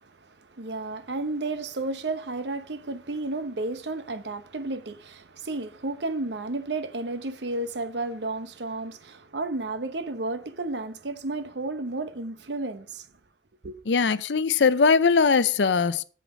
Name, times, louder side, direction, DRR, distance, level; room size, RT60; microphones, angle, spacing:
voice 1, 0.0-13.1 13.6-13.8, right 2 dB, 75° right, 0.9 m, -32 dB
voice 2, 13.9-16.1, left 5 dB, 85° left, 0.6 m, -21 dB
8.3 x 7.7 x 4.9 m
head